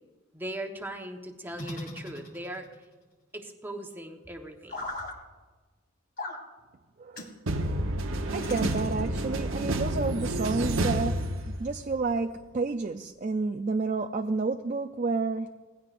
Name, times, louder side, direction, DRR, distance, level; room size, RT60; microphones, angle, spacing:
voice 1, 0.3-2.7 3.3-4.9, right 1 dB, 10° right, 3 dB, 1.2 m, -39 dB
sound 1, 1.6-2.8 4.7-5.1 6.2-6.4 7.1-7.4 8.4-9.3, left 1 dB, 45° left, 2.2 m, -38 dB
voice 2, 7.0-7.3 7.6-15.5, right 3 dB, 40° right, 4 dB, 0.4 m, -30 dB
sound 2, 7.5-11.9, right 1 dB, 75° right, 0.9 m, -29 dB
20.0 x 16.5 x 2.5 m, 1.3 s
head